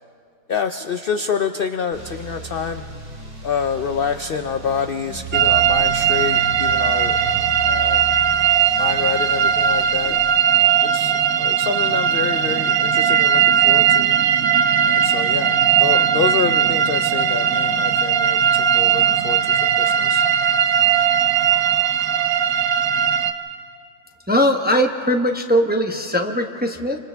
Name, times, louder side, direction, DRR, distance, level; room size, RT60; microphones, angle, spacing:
voice 1, 0.5-2.8 3.4-7.2 7.6-8.0 8.8-10.2 10.5-14.1 14.8-20.3, left 6 dB, 70° left, 7 dB, 0.5 m, -27 dB
sound 1, 1.9-10.2, right 3 dB, 50° right, 2.9 m, -35 dB
sound 2, 5.3-23.3, right 8 dB, 65° right, 1.2 m, -18 dB
voice 2, 24.3-27.0, equal, 10° right, 3 dB, 0.6 m, -20 dB
30.0 x 26.0 x 3.4 m, 2.3 s
omnidirectional pair, 1.7 m